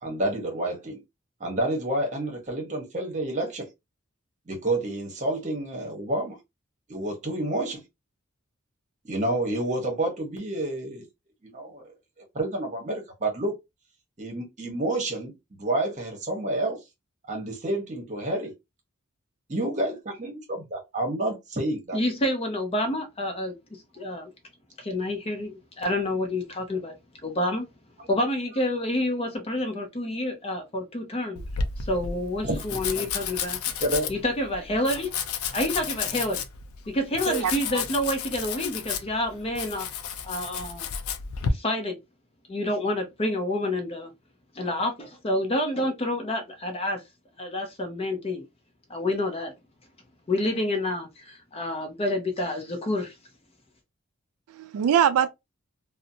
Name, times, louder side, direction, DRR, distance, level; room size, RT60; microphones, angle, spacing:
voice 1, 0.0-1.0 1.4-3.7 4.5-6.4 6.9-7.8 9.0-11.1 11.5-11.9 12.3-13.5 14.2-16.8 17.3-18.5 19.5-22.0 32.4-33.1 33.8-34.1, right 1 dB, 35° right, 0.9 m, -29 dB
voice 2, 21.9-24.3 24.8-26.9 27.2-27.7 28.1-31.4 31.8-33.7 34.1-35.2 35.5-36.4 36.9-39.9 40.2-40.9 41.5-42.0 42.5-44.1 44.5-47.0 47.4-48.4 48.9-49.5 50.3-53.1, left 1 dB, 25° left, 0.6 m, -28 dB
Domestic sounds home sounds, 31.4-41.5, left 6 dB, 85° left, 0.4 m, -32 dB
voice 3, 37.3-37.8 54.5-55.3, right 9 dB, 85° right, 0.3 m, -23 dB
2.6 x 2.0 x 2.6 m
head